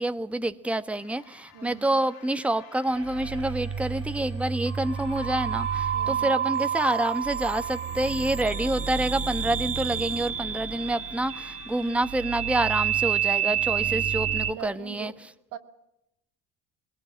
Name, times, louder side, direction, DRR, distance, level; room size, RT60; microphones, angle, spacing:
voice 1, 0.0-15.1, right 1 dB, 5° right, 10 dB, 1.2 m, -28 dB
sound 1, 0.9-14.6, left 10 dB, 65° left, 2.2 m, -54 dB
voice 2, 1.5-2.0 5.9-6.3 14.4-15.1 15.5-15.6, right 11 dB, 75° right, 6 dB, 2.2 m, -41 dB
sound 2, 2.9-14.5, right 8 dB, 45° right, 1.5 m, -29 dB
22.0 x 18.0 x 8.7 m, 0.85 s
supercardioid pair, 70°, 32 cm